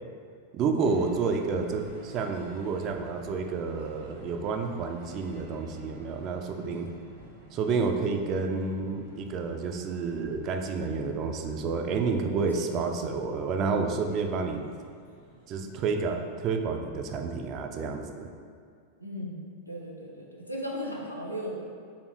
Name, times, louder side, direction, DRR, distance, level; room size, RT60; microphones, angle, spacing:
voice 1, 0.5-6.9 7.5-14.6 15.5-18.3, right 4 dB, 35° right, 5 dB, 0.3 m, -30 dB
sound 1, 0.8-16.0, right 1 dB, 60° right, 1.0 m, -52 dB
voice 2, 12.5-13.1 13.6-13.8 19.0-19.4 19.7-21.5, equal, 90° left, -2 dB, 0.5 m, -37 dB
4.0 x 3.3 x 3.0 m, 2.2 s
figure-of-eight pair, 90°, 0 cm